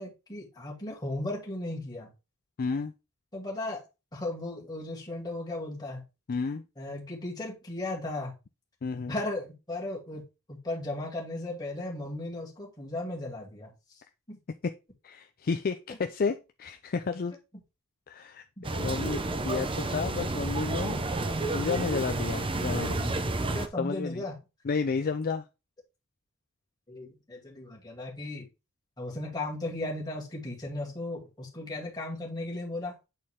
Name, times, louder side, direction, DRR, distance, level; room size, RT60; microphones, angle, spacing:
voice 1, 0.0-2.1 3.3-3.8 4.1-6.0 6.8-8.4 9.1-10.2 10.5-13.7 14.3-14.4 18.6-18.7 22.7-23.1 23.4-24.3 26.9-28.5 29.0-32.9, left 2 dB, 20° left, 2.4 m, -36 dB
voice 2, 2.6-2.9 6.3-6.6 8.8-9.1 14.6-14.7 15.0-17.3 18.1-18.5 18.7-21.0 21.5-23.2 23.8-24.2 24.6-25.5, left 5 dB, 40° left, 0.4 m, -31 dB
sound 1, 18.6-23.7, right 2 dB, 25° right, 0.6 m, -30 dB
8.5 x 4.3 x 3.6 m
head